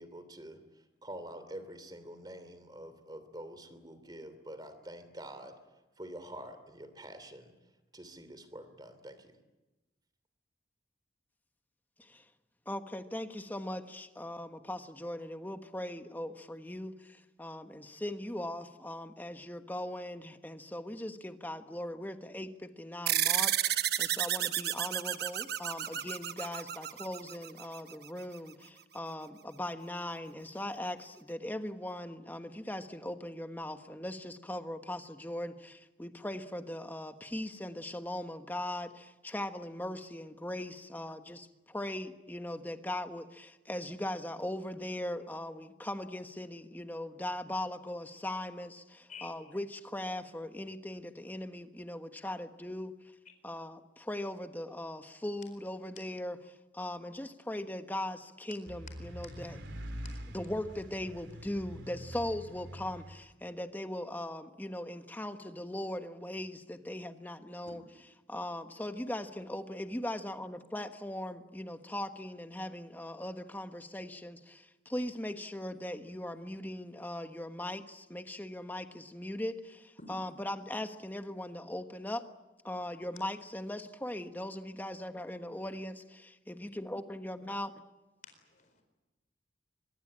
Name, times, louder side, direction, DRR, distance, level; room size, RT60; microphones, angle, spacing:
voice 1, 0.0-5.6 6.0-7.5 7.9-9.4, right 1 dB, 25° right, 2.9 m, -47 dB
voice 2, 12.7-52.9 53.4-59.6 60.3-67.8 68.3-82.2 82.6-87.7, left 1 dB, 10° left, 1.3 m, -39 dB
sound 1, 23.1-27.9, right 11 dB, 60° right, 1.0 m, -31 dB
sound 2, 58.7-63.2, equal, 85° right, 3.0 m, -45 dB
voice 3, 88.2-88.8, left 5 dB, 45° left, 4.4 m, -50 dB
24.0 x 22.5 x 8.8 m
head